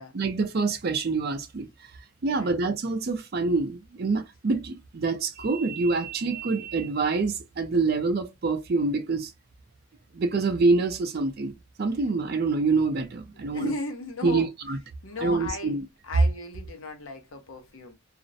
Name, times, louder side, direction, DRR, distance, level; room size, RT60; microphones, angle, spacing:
voice 1, 0.1-1.7 2.2-9.3 10.1-13.7 14.2-14.8 15.2-15.8, right 3 dB, 45° right, 0.4 m, -26 dB
voice 2, 2.2-2.6 13.3-14.5 15.0-15.8 16.0-17.9, left 3 dB, 70° left, 0.7 m, -36 dB
2.4 x 2.0 x 2.6 m
head